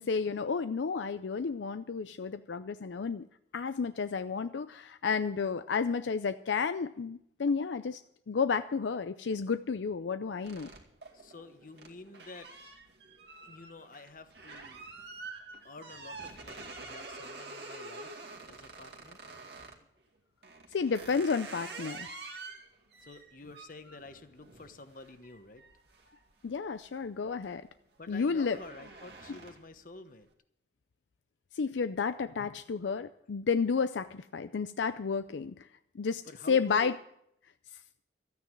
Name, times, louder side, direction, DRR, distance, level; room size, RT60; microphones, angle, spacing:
voice 1, 0.0-3.2 3.5-8.0 8.3-10.7 20.7-22.1 26.4-27.6 28.1-28.6 31.5-35.7 35.9-36.2 36.5-36.9, left 5 dB, 80° left, 11 dB, 0.5 m, -31 dB
sound 1, 10.4-19.8 20.4-26.9 27.3-27.6 28.0-29.8, right 3 dB, 65° right, 2.2 m, -47 dB
voice 2, 11.1-12.5 13.4-14.9 15.6-19.3 23.0-25.6 28.0-30.3 36.2-36.9, left 2 dB, 50° left, 9 dB, 1.1 m, -50 dB
13.5 x 9.4 x 7.4 m, 0.74 s
head